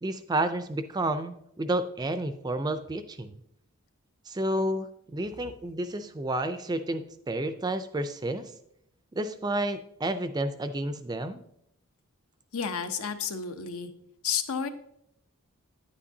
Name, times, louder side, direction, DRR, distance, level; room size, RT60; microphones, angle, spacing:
voice 1, 0.0-3.4 4.3-8.5 9.1-11.4, right 1 dB, 20° right, 10 dB, 0.3 m, -30 dB
voice 2, 12.5-13.9 14.2-14.7, left 6 dB, 80° left, 8 dB, 0.8 m, -31 dB
9.9 x 8.5 x 2.7 m, 0.75 s
head